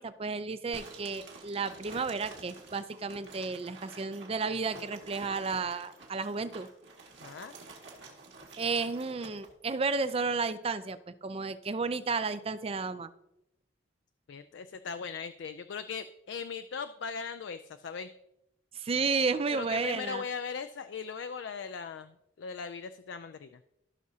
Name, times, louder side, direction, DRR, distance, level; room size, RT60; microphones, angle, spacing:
voice 1, 0.0-6.7 8.6-13.1 18.7-20.2, right 4 dB, 30° right, 13 dB, 0.4 m, -32 dB
sound 1, 0.7-9.5, right 3 dB, 65° right, 2.0 m, -49 dB
voice 2, 7.2-7.5 14.3-18.1 19.5-23.6, left 6 dB, 65° left, 10 dB, 0.3 m, -39 dB
15.5 x 6.1 x 2.8 m, 0.84 s
head